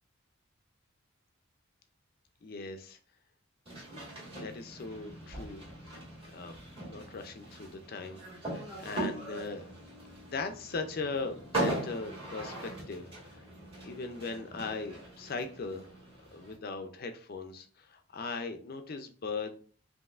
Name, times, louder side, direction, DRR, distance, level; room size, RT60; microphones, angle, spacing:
voice 1, 2.4-3.0 4.4-6.0 6.3-6.5 6.8-9.6 10.3-13.4 13.8-15.9 16.3-19.5, left 4 dB, 45° left, 7 dB, 0.4 m, -39 dB
sound 1, 3.7-16.6, right 1 dB, 25° right, 1.8 m, -40 dB
5.3 x 2.7 x 2.4 m, 0.42 s
head